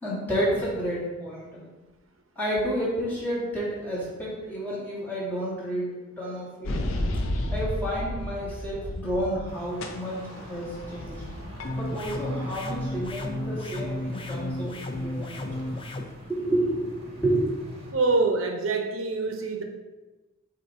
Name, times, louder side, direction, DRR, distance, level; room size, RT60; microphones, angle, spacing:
voice 1, 0.0-1.7 2.4-5.9 6.2-6.9 7.5-11.2 11.7-15.7 16.3-16.9 17.2-17.5, right 1 dB, 10° left, -7 dB, 2.0 m, -30 dB
sound 1, 6.6-9.5 9.8-13.3, left 1 dB, 75° left, 0.6 m, -33 dB
sound 2, 9.5-17.9, equal, 30° right, 1.2 m, -45 dB
sound 3, 11.6-16.0, left 1 dB, 25° left, 0.4 m, -33 dB
voice 2, 17.9-19.6, right 3 dB, 75° right, 4 dB, 0.8 m, -25 dB
7.2 x 2.9 x 4.5 m, 1.1 s
head